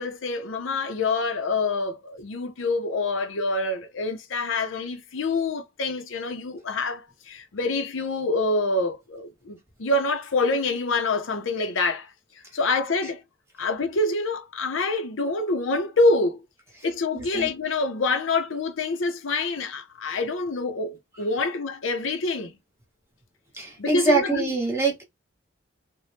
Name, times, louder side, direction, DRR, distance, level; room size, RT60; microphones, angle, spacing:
voice 1, 0.0-12.1 12.5-13.2 13.6-16.4 16.8-22.6 23.8-24.5, left 3 dB, 75° left, 0.6 m, -26 dB
voice 2, 17.1-17.5 23.5-25.0, right 3 dB, 15° right, 1.1 m, -24 dB
3.3 x 2.2 x 2.6 m
head